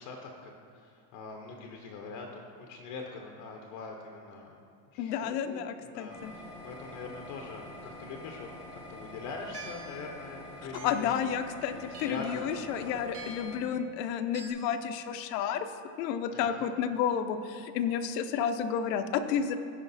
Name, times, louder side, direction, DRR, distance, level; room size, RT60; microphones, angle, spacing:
voice 1, 0.0-4.6 4.9-11.1 11.7-13.0 16.3-16.7, left 4 dB, 35° left, 2 dB, 0.8 m, -43 dB
voice 2, 5.0-6.3 10.8-15.7 16.0-19.6, left 8 dB, 75° left, 9 dB, 0.8 m, -31 dB
sound 1, 6.1-13.6, left 1 dB, ahead, 0.3 m, -46 dB
sound 2, 9.5-10.0 10.7-11.2 11.9-12.4 13.1-13.6 14.3-14.5, right 2 dB, 30° right, 1.3 m, -45 dB
15.5 x 5.2 x 4.0 m, 2.4 s
supercardioid pair, 170°, 49 cm